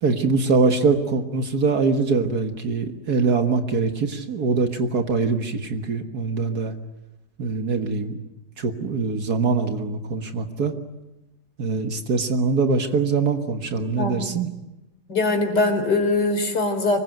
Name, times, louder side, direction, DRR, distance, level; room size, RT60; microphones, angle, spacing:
voice 1, 0.0-6.7 7.4-8.2 8.6-10.8 11.6-14.5, right 4 dB, 60° right, 7 dB, 2.0 m, -23 dB
voice 2, 15.1-17.0, left 2 dB, 75° left, 6 dB, 4.4 m, -22 dB
25.0 x 22.0 x 9.3 m, 0.96 s
omnidirectional pair, 1.9 m